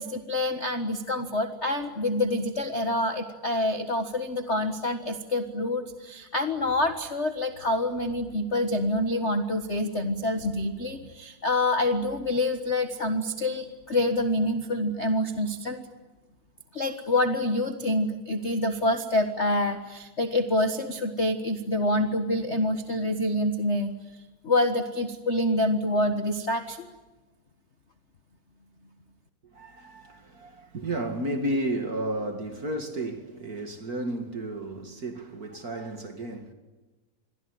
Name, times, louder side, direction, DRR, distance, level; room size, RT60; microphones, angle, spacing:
voice 1, 0.0-15.8 16.7-24.0 24.4-26.9, left 1 dB, 50° left, 0.8 m, -27 dB
voice 2, 29.4-36.5, right 1 dB, 30° right, 2.2 m, -32 dB
28.0 x 22.5 x 9.5 m
omnidirectional pair, 3.7 m